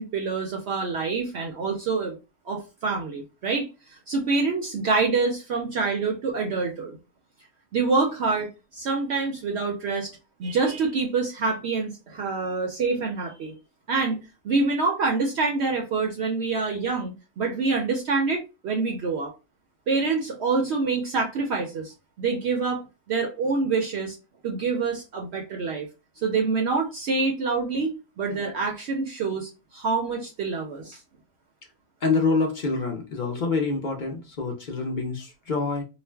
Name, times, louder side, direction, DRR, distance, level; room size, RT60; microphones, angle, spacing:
voice 1, 0.0-2.2 2.5-7.0 7.7-10.1 10.4-13.5 13.9-19.3 19.9-24.2 24.4-25.9 26.2-31.0, right 4 dB, 65° right, 2 dB, 0.7 m, -26 dB
voice 2, 32.0-35.8, left 4 dB, 50° left, 1 dB, 0.6 m, -26 dB
2.4 x 2.1 x 3.2 m, 0.29 s
omnidirectional pair, 1.3 m